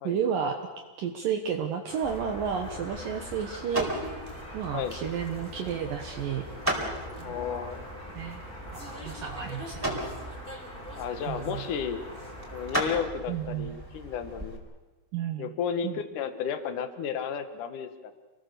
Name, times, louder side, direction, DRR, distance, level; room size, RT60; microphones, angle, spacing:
voice 1, 0.0-0.6 1.0-3.9 4.5-6.8 7.2-7.7 8.1-8.4 8.7-9.9 11.3-11.6 13.3-13.8 15.1-15.5 15.8-16.0, right 7 dB, 65° right, 4 dB, 2.7 m, -32 dB
sound 1, 1.9-12.8, left 1 dB, 15° left, 3.5 m, -44 dB
sound 2, 2.0-14.6, right 1 dB, 5° right, 4.2 m, -37 dB
voice 2, 7.2-7.8 11.0-12.0 12.5-14.6 15.4-18.1, left 7 dB, 60° left, 9 dB, 2.7 m, -33 dB
29.0 x 21.0 x 6.9 m, 1.2 s
omnidirectional pair, 4.7 m